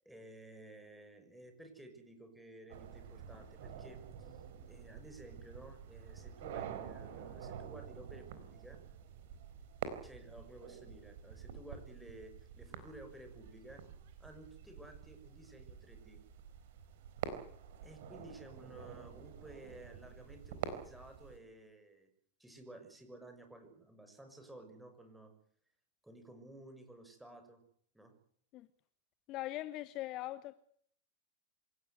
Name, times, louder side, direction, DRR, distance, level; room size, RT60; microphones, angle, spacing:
voice 1, 0.0-4.4 4.7-8.8 10.0-13.8 14.2-16.2 17.8-22.1 22.4-25.3 26.0-27.6 27.9-28.1, right 1 dB, 5° right, 6.6 m, -54 dB
sound 1, 2.7-21.4, right 8 dB, 55° right, 4.1 m, -48 dB
voice 2, 29.3-30.6, left 16 dB, 40° left, 1.0 m, -41 dB
27.0 x 17.0 x 8.2 m
figure-of-eight pair, 90°, 0 cm